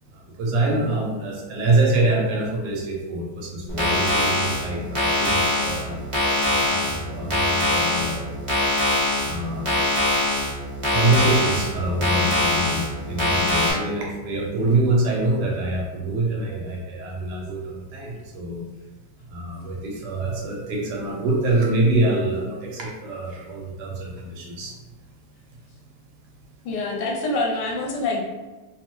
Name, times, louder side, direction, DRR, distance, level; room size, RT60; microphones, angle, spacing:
voice 1, 0.1-8.5 9.2-9.9 10.9-18.6 19.3-24.8, right 2 dB, 75° right, -1 dB, 1.2 m, -25 dB
voice 2, 0.8-1.2 26.6-28.2, left 2 dB, 80° left, -1 dB, 1.2 m, -26 dB
sound 1, 3.7-13.7, left 1 dB, 35° right, 0.5 m, -23 dB
3.0 x 2.0 x 3.0 m, 1.2 s
omnidirectional pair, 1.9 m